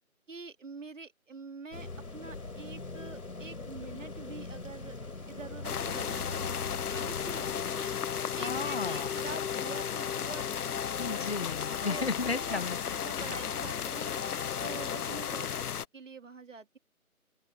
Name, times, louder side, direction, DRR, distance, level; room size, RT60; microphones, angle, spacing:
voice 1, 0.3-5.0 5.3-6.5 6.8-7.9 8.3-10.7 11.8-12.6 13.0-14.2 14.6-15.5 15.9-16.8, right 4 dB, 55° right, 2.2 m, -45 dB
sound 1, 1.7-7.8, left 3 dB, 75° left, 3.5 m, -42 dB
sound 2, 5.6-15.9, left 8 dB, 90° left, 0.6 m, -34 dB
voice 2, 8.4-9.2 11.0-13.4, left 4 dB, 45° left, 1.5 m, -35 dB
open air
figure-of-eight pair, 160°, 44 cm